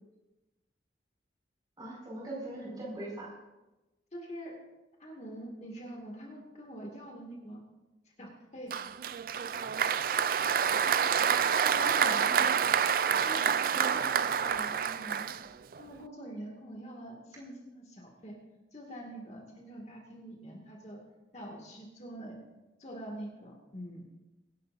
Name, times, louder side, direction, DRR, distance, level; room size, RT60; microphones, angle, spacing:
voice 1, 1.8-3.4 10.7-11.3 11.6-12.5 13.7-14.1, right 2 dB, 20° right, -4 dB, 5.3 m, -41 dB
voice 2, 4.1-4.6 5.0-7.6 8.2-8.8 12.0-12.2 13.2-15.4 15.8-18.4 18.7-21.0 21.3-22.4 22.8-24.0, right 1 dB, 35° left, 0 dB, 2.2 m, -45 dB
Applause, 8.7-15.8, right 7 dB, 50° right, 0.4 m, -28 dB
24.0 x 12.0 x 2.7 m, 1.1 s
head